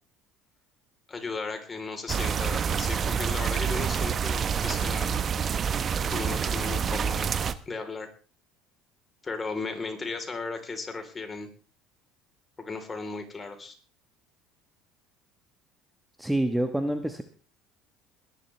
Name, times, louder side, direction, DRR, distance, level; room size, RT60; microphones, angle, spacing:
voice 1, 1.1-5.1 6.1-7.3 7.7-8.1 9.2-11.5 12.6-13.7, left 3 dB, 25° left, 5 dB, 3.8 m, -35 dB
sound 1, 2.1-7.5, right 7 dB, 40° right, 1.0 m, -27 dB
voice 2, 16.2-17.2, right 1 dB, 5° right, 7 dB, 1.4 m, -27 dB
21.0 x 11.5 x 3.4 m, 0.39 s
hypercardioid pair, 70°, 0 cm